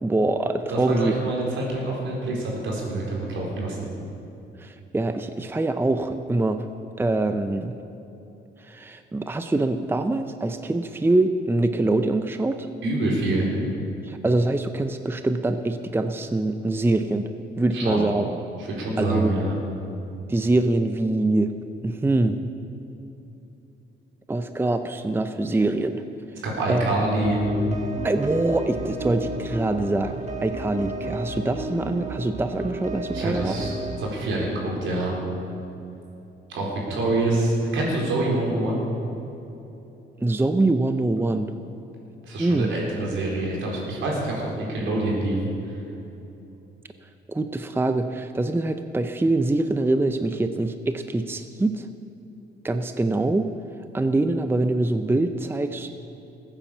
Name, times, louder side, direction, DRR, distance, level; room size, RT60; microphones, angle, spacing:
voice 1, 0.0-1.1 4.6-6.6 7.0-7.8 8.6-12.7 14.0-17.3 17.6-18.3 19.0-19.3 20.3-21.5 21.8-22.4 24.3-26.0 26.7-26.9 28.0-33.6 40.2-41.5 42.4-42.7 47.3-51.9 52.6-53.5 53.9-55.9, right 2 dB, 10° right, 8 dB, 0.6 m, -24 dB
voice 2, 0.7-3.9 12.8-13.5 17.7-18.1 18.6-19.5 26.4-27.4 33.1-33.7 34.0-35.2 36.5-38.8 42.2-45.4 45.7-45.8, right 2 dB, 75° right, -2 dB, 4.1 m, -26 dB
sound 1, 27.2-34.1, right 1 dB, 35° right, 2.1 m, -33 dB
15.0 x 9.0 x 7.2 m, 2.9 s
cardioid pair, 90°, 20 cm